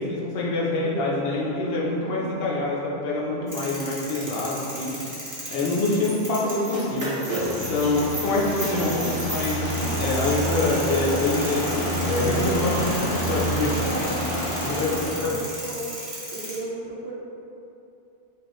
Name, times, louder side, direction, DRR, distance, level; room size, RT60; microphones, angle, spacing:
voice 1, 0.0-5.2 5.5-7.1 7.5-12.9 13.3-13.9 14.6-15.3, left 2 dB, 65° left, -4 dB, 0.8 m, -25 dB
voice 2, 2.0-2.4 12.8-13.0 13.8-14.2 14.7-15.9 16.3-17.1, right 2 dB, 65° right, -3 dB, 0.9 m, -35 dB
sound 1, 3.5-16.6, right 1 dB, 20° right, 0.6 m, -34 dB
sound 2, 7.2-15.3, equal, 30° left, 0.7 m, -28 dB
4.6 x 2.4 x 3.0 m, 2.8 s
omnidirectional pair, 1.1 m